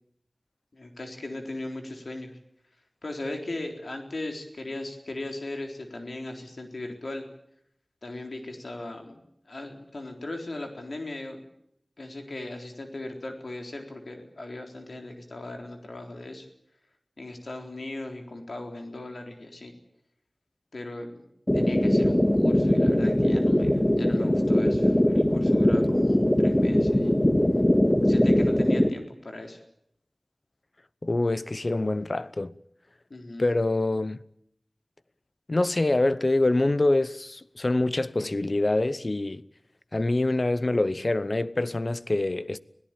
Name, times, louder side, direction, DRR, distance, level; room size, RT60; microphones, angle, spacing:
voice 1, 0.7-2.3 3.0-7.3 8.0-11.4 12.0-16.5 17.2-19.7 20.7-21.2 21.5-27.2 28.0-29.6 33.1-33.5, left 2 dB, 85° left, 3.9 m, -38 dB
sound 1, 21.5-28.9, left 1 dB, 20° left, 1.9 m, -21 dB
voice 2, 31.0-32.5 33.4-34.2 35.5-39.4 39.9-42.6, left 2 dB, 55° left, 0.8 m, -25 dB
26.0 x 17.0 x 9.0 m
wide cardioid pair, 40°, 0 cm